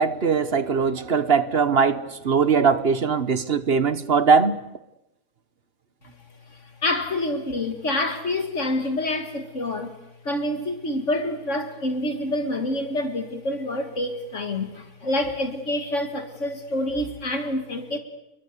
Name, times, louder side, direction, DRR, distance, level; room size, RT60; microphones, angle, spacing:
voice 1, 0.0-4.6, right 5 dB, 45° right, 1.2 m, -20 dB
voice 2, 6.5-9.9 10.2-18.0, left 1 dB, 60° left, 2.2 m, -27 dB
29.5 x 22.0 x 6.7 m
omnidirectional pair, 1.5 m